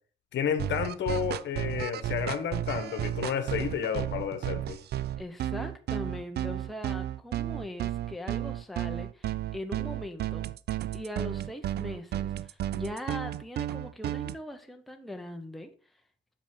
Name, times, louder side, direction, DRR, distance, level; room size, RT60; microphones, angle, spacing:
voice 1, 0.3-4.8, left 8 dB, 65° left, 1.1 m, -31 dB
sound 1, 0.6-14.4, right 12 dB, 55° right, 0.4 m, -33 dB
voice 2, 5.2-10.4 10.9-15.7, left 1 dB, ahead, 0.8 m, -40 dB
7.1 x 5.0 x 3.7 m
cardioid pair, 90°, 20 cm